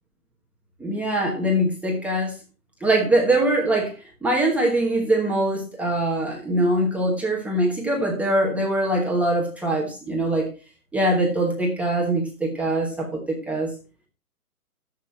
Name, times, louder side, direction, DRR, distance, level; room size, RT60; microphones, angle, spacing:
voice 1, 0.8-2.3 2.8-3.9 4.2-10.5 10.9-13.7, right 1 dB, 5° right, -2 dB, 1.1 m, -22 dB
11.5 x 7.7 x 4.3 m, 0.33 s
hypercardioid pair, 150°, 46 cm